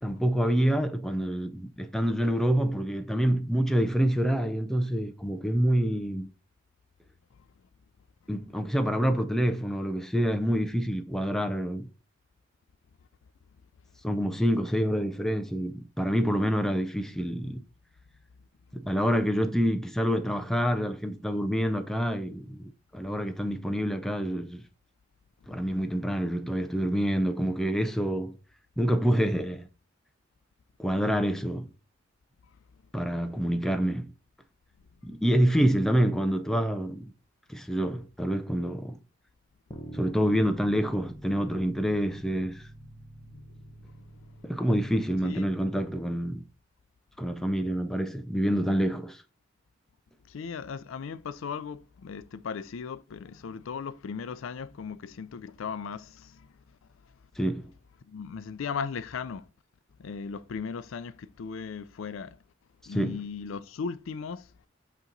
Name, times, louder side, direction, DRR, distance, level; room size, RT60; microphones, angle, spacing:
voice 1, 0.0-6.3 8.3-11.9 14.0-17.6 18.7-22.6 22.9-24.6 25.5-28.3 28.8-29.7 30.8-31.7 32.9-34.1 35.0-37.1 37.5-39.0 39.9-42.7 44.4-46.4 47.2-49.2 57.4-57.7 62.9-63.2, equal, ahead, 0.4 m, -27 dB
sound 1, 39.7-46.0, right 1 dB, 20° left, 0.8 m, -47 dB
voice 2, 42.9-44.5 45.2-45.4 50.3-56.5 58.0-59.5 60.0-62.4 62.9-64.5, left 6 dB, 75° left, 0.4 m, -37 dB
8.2 x 3.0 x 3.8 m
head